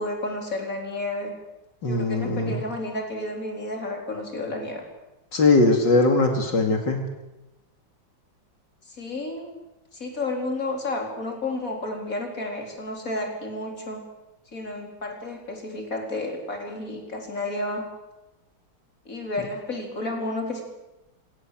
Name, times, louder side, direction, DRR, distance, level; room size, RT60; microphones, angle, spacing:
voice 1, 0.0-1.4 1.8-4.8 8.9-9.6 9.9-14.0 14.5-17.9 19.0-20.6, left 2 dB, 45° left, 2 dB, 4.6 m, -31 dB
voice 2, 1.8-2.6 5.3-7.0, left 3 dB, 70° left, 4 dB, 3.0 m, -20 dB
26.0 x 18.0 x 7.6 m, 1.0 s
omnidirectional pair, 2.0 m